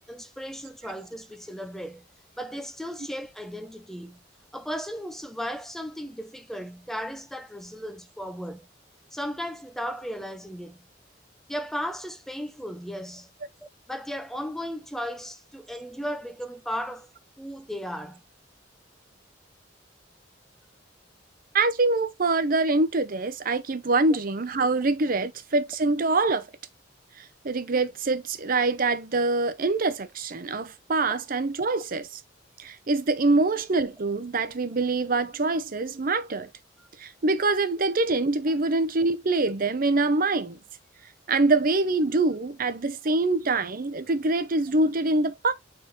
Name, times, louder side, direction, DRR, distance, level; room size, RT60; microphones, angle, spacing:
voice 1, 0.1-2.0 2.4-4.2 4.5-8.7 9.1-10.8 11.5-13.3 13.6-17.1 17.4-18.2 36.8-36.9 40.0-40.2, equal, ahead, 0.4 m, -36 dB
voice 2, 21.5-26.5 27.2-32.2 32.6-36.5 37.0-40.6 41.3-45.5, right 3 dB, 50° right, 0.7 m, -25 dB
8.9 x 3.7 x 3.0 m
head